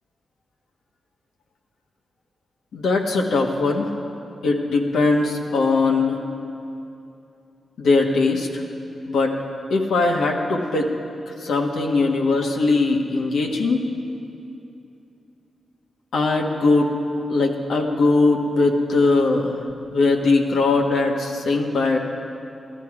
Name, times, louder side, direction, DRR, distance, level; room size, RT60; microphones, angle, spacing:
voice 1, 2.7-3.9 4.4-6.2 7.8-8.6 9.1-9.4 9.7-10.9 11.3-13.9 16.1-17.0 17.3-22.0, left 3 dB, 80° left, 1 dB, 1.3 m, -20 dB
15.0 x 12.5 x 4.9 m, 2.7 s
cardioid pair, 55°, 0 cm